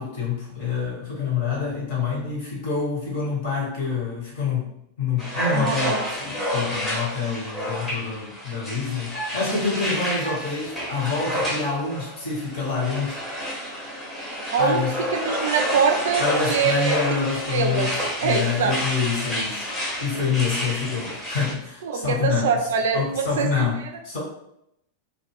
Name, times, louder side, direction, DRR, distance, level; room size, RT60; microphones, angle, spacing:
voice 1, 0.0-4.7 5.0-13.2 14.6-15.0 16.2-18.0 18.2-19.7 20.0-22.7 22.9-24.2, left 5 dB, 50° left, -4 dB, 1.3 m, -27 dB
sound 1, 5.2-21.5, equal, 10° left, 0.9 m, -30 dB
voice 2, 5.5-6.0 14.5-14.8 15.1-17.2 17.5-17.9 18.2-18.8 21.8-23.6, right 5 dB, 60° right, 4 dB, 0.4 m, -24 dB
2.3 x 2.2 x 3.4 m, 0.78 s
figure-of-eight pair, 90°, 0 cm